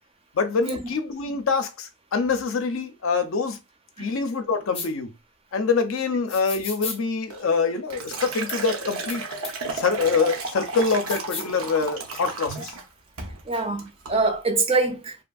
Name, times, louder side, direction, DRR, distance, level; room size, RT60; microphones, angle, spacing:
voice 1, 0.3-3.6 4.0-5.1 5.5-9.3 9.7-12.7, left 4 dB, 75° left, 0.5 m, -25 dB
sound 1, 4.7-4.9 6.3-7.0 8.5-8.6 9.1-9.2 9.4-9.5 10.9-11.5, left 5 dB, 30° left, 0.5 m, -34 dB
Liquid, 7.3-12.8 13.2-13.4 13.8-14.2, right 3 dB, 85° right, 0.7 m, -33 dB
voice 2, 13.5-15.2, right 3 dB, 30° right, 0.4 m, -24 dB
2.7 x 2.6 x 2.3 m
head